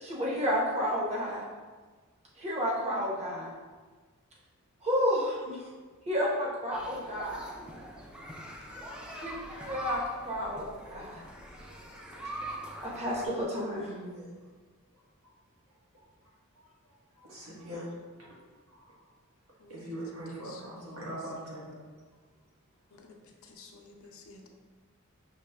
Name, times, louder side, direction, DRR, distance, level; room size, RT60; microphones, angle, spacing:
voice 1, 0.0-1.5 2.4-3.5 4.8-5.7 6.1-7.4 9.2-9.3 9.7-11.2 12.8-13.9, equal, 30° right, -4 dB, 0.9 m, -31 dB
sound 1, 6.7-13.3, equal, 5° right, 0.4 m, -42 dB
voice 2, 13.4-14.3 15.9-16.0 16.6-16.7 17.2-17.9 18.2-18.4 18.7-19.0 19.7-21.8, right 1 dB, 85° right, -5 dB, 1.2 m, -42 dB
voice 3, 23.4-24.5, left 4 dB, 70° left, 2 dB, 0.5 m, -52 dB
5.8 x 3.0 x 2.2 m, 1.4 s
head